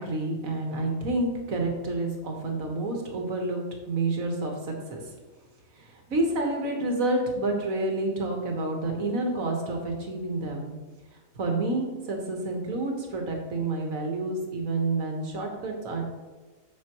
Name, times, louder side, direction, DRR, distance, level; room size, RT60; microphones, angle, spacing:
voice 1, 0.0-5.0 5.8-10.7 11.4-16.0, right 2 dB, 75° right, 2 dB, 1.8 m, -29 dB
8.3 x 6.8 x 3.0 m, 1.3 s
omnidirectional pair, 1.4 m